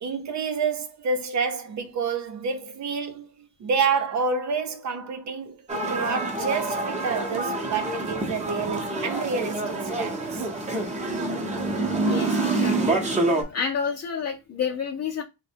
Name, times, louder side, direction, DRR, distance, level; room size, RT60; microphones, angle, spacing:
voice 1, 0.0-3.3 3.6-5.6 5.9-10.5, right 5 dB, 55° right, 0.7 m, -28 dB
sound 1, 5.7-13.4, right 2 dB, 20° right, 0.8 m, -27 dB
voice 2, 12.1-13.1 13.3-15.2, left 6 dB, 45° left, 0.7 m, -30 dB
3.2 x 2.2 x 4.3 m
wide cardioid pair, 160°, 34 cm